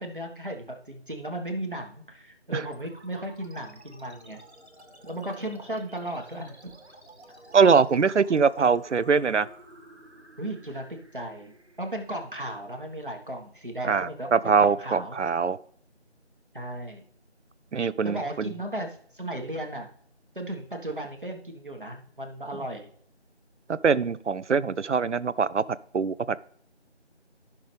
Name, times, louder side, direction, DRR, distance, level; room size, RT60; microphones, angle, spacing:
voice 1, 0.0-4.4 5.0-6.7 8.6-8.7 10.4-10.8 11.1-11.5 11.8-15.2 16.5-17.0 18.0-19.9 20.3-22.9, right 1 dB, 45° right, 3 dB, 1.6 m, -35 dB
sound 1, 2.7-13.7, right 1 dB, 70° right, 1.7 m, -52 dB
voice 2, 7.5-9.5 13.8-15.6 17.7-18.5 23.7-25.6 25.9-26.4, right 5 dB, 85° right, 18 dB, 0.6 m, -23 dB
14.5 x 5.9 x 3.4 m, 0.63 s
figure-of-eight pair, 180°, 35 cm